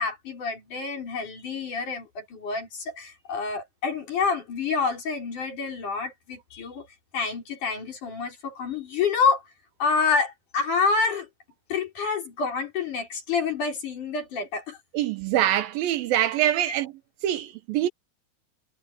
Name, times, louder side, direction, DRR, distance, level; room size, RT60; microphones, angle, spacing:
voice 1, 0.0-6.9 7.1-9.4 9.8-11.3 11.7-14.8 16.7-16.8, left 5 dB, 55° left, 6.3 m, -28 dB
voice 2, 14.9-16.9 17.2-17.9, right 12 dB, 75° right, 2.6 m, -24 dB
omnidirectional pair, 4.4 m